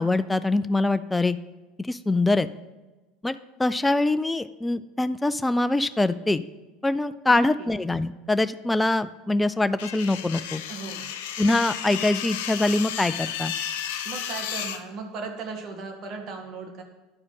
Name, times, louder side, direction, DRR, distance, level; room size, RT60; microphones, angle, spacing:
voice 1, 0.0-1.4 1.8-2.5 3.2-6.4 6.8-10.6 11.4-13.5, left 2 dB, 10° left, 12 dB, 0.4 m, -24 dB
voice 2, 7.3-7.7 10.7-11.1 14.0-16.8, right 4 dB, 45° right, 3 dB, 1.7 m, -37 dB
sound 1, 9.8-14.8, left 9 dB, 65° left, 0.6 m, -33 dB
10.5 x 4.9 x 5.5 m, 1.1 s
figure-of-eight pair, 70°, 0 cm